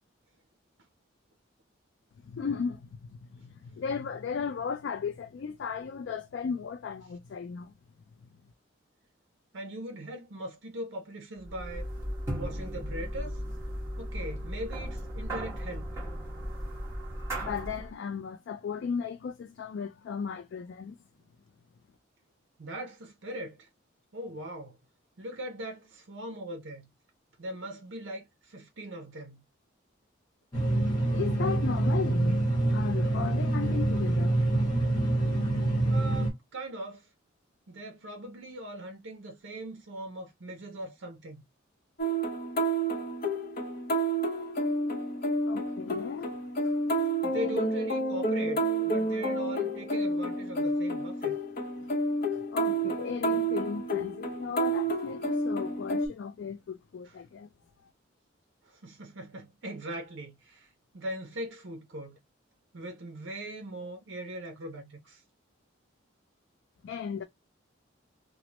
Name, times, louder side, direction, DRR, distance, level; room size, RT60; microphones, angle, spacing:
voice 1, 2.2-7.7 8.2-8.3 17.4-21.0 31.1-32.4 32.7-34.4 45.5-46.8 47.3-47.6 52.5-57.5 57.8-57.9 66.8-67.2, left 6 dB, 60° left, 0.3 m, -36 dB
voice 2, 9.5-11.9 12.3-13.4 14.0-15.9 22.6-23.7 24.1-24.8 25.2-26.9 27.4-29.4 35.9-37.1 37.7-41.4 47.2-51.4 57.0-57.2 58.6-62.2 62.7-65.2, right 1 dB, 65° right, 0.6 m, -40 dB
sound 1, 11.4-17.9, equal, 15° right, 1.4 m, -36 dB
sound 2, 30.5-36.3, right 2 dB, 20° left, 1.1 m, -26 dB
sound 3, 42.0-56.1, right 1 dB, 45° left, 0.7 m, -30 dB
3.1 x 2.0 x 2.8 m
head